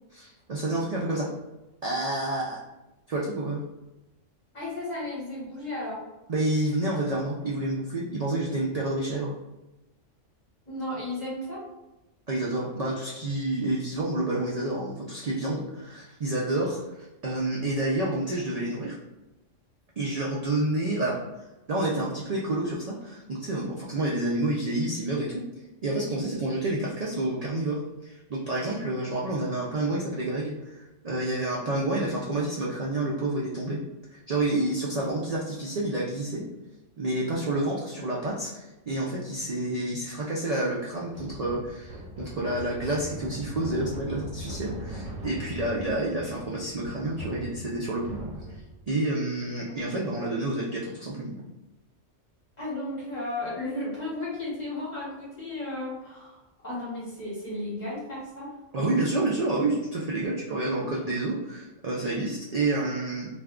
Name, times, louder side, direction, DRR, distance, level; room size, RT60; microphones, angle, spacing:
voice 1, 0.1-1.3 1.8-2.6 3.1-3.6 6.3-9.3 12.3-19.0 20.0-21.2 21.7-25.4 25.8-33.8 34.1-36.4 37.0-48.2 48.5-48.6 48.9-51.3 58.7-63.3, right 2 dB, 90° right, -4 dB, 0.3 m, -29 dB
voice 2, 4.5-6.0 10.7-11.7 49.7-50.6 52.6-56.4 56.6-58.5 60.7-61.2, left 1 dB, 35° left, -7 dB, 1.2 m, -34 dB
sound 1, 41.1-48.9, equal, 70° right, 1.0 m, -40 dB
2.5 x 2.3 x 3.5 m, 1.0 s
omnidirectional pair, 1.3 m